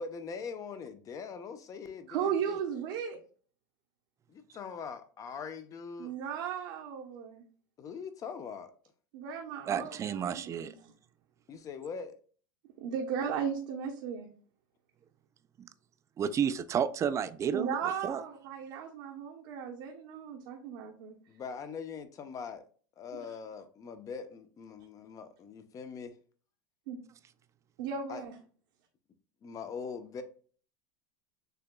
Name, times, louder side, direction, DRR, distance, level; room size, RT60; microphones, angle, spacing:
voice 1, 0.0-2.6 4.3-6.2 7.8-8.7 11.5-12.1 21.3-22.6 23.0-26.1 28.1-28.2 29.4-30.2, left 5 dB, 30° left, 0.7 m, -42 dB
voice 2, 2.1-3.2 6.0-7.4 9.1-10.9 12.8-14.3 17.5-21.1 23.1-23.2 26.9-27.0 27.8-28.4, right 7 dB, 70° right, 0.9 m, -36 dB
voice 3, 9.7-10.7 15.6-15.7 16.2-17.7 18.0-18.2, right 8 dB, 30° right, 0.4 m, -31 dB
6.8 x 2.9 x 2.2 m
supercardioid pair, 110°, 11 cm